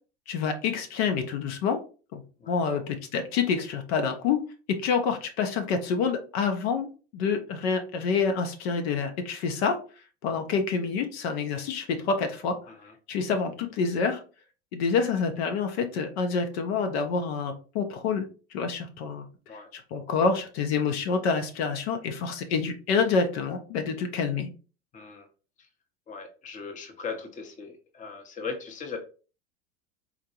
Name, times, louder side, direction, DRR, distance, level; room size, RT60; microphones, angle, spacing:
voice 1, 0.3-1.8 2.1-2.2 2.5-4.4 4.8-6.9 7.1-9.8 10.2-12.6 13.1-14.2 14.7-18.3 18.5-19.3 19.5-24.5, left 5 dB, 70° left, 6 dB, 0.7 m, -27 dB
voice 2, 2.4-2.8 12.7-12.9 19.5-19.7 24.9-25.3 25.6-25.7 26.1-29.0, left 5 dB, 25° left, 5 dB, 0.8 m, -39 dB
3.9 x 2.1 x 2.8 m, 0.36 s
hypercardioid pair, 95°, 33 cm